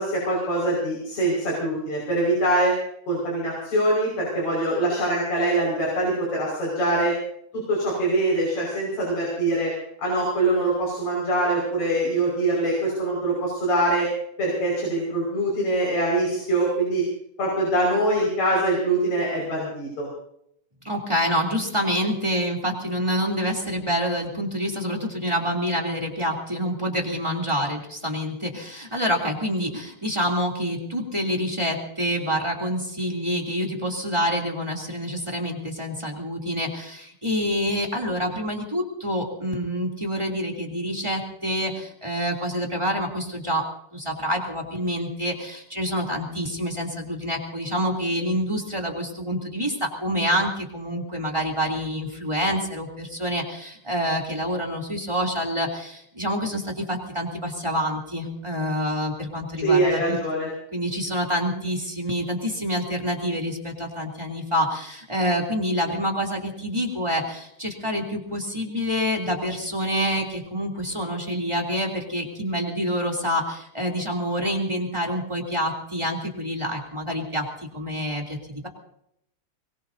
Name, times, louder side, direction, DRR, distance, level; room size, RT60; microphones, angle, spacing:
voice 1, 0.0-2.7 3.1-7.1 7.7-9.7 10.0-14.1 14.4-17.0 17.4-20.1 59.6-60.5, right 1 dB, 65° left, -3 dB, 6.9 m, -23 dB
voice 2, 20.8-43.7 43.9-60.2 60.7-78.7, equal, 10° right, 2 dB, 3.0 m, -27 dB
23.0 x 22.5 x 2.8 m, 0.74 s
omnidirectional pair, 3.4 m